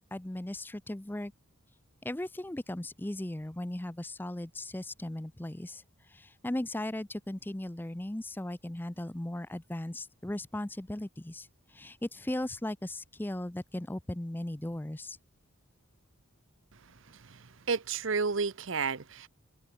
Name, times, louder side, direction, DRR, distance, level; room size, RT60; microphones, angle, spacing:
voice 1, 0.1-1.3 2.0-15.2, left 1 dB, 10° left, 0.5 m, -37 dB
voice 2, 17.1-19.3, right 5 dB, 65° right, 0.8 m, -32 dB
head